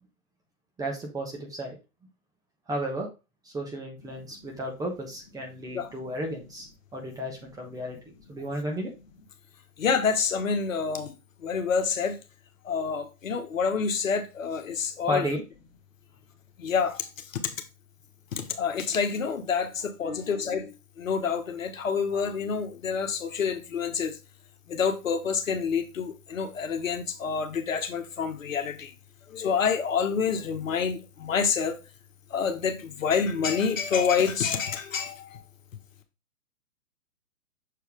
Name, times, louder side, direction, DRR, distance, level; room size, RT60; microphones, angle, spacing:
voice 1, 0.8-1.8 2.7-3.1 3.4-6.7 6.9-8.0 8.3-8.9 15.1-15.4 20.1-20.3, right 1 dB, 10° right, 1.2 m, -33 dB
voice 2, 9.8-11.1 11.4-12.2 12.6-15.3 16.6-17.1 18.3-24.2 24.7-28.9 29.3-31.8 32.3-35.4, left 6 dB, 60° left, 1.5 m, -27 dB
6.8 x 4.6 x 3.4 m
figure-of-eight pair, 125°, 44 cm